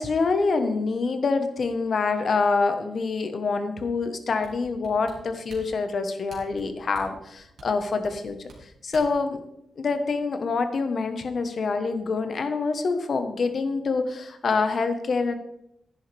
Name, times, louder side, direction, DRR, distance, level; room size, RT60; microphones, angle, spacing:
voice 1, 0.0-9.4 9.8-15.4, left 4 dB, 60° left, 8 dB, 1.2 m, -26 dB
sound 1, 4.4-9.3 9.7-9.8, right 3 dB, 80° right, 3.0 m, -47 dB
10.5 x 10.0 x 3.5 m, 0.78 s
cardioid pair, 75°, 0 cm